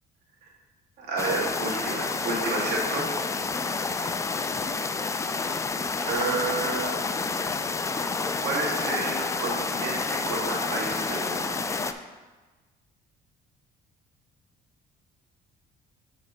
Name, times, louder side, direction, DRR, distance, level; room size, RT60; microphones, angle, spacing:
voice 1, 1.0-3.4 4.4-4.7 6.0-6.9 8.4-11.8, right 2 dB, 80° right, -2 dB, 1.9 m, -31 dB
sound 1, 1.2-11.9, left 4 dB, 20° left, 0.3 m, -29 dB
6.7 x 4.2 x 5.2 m, 1.3 s
cardioid pair, 110°, 17 cm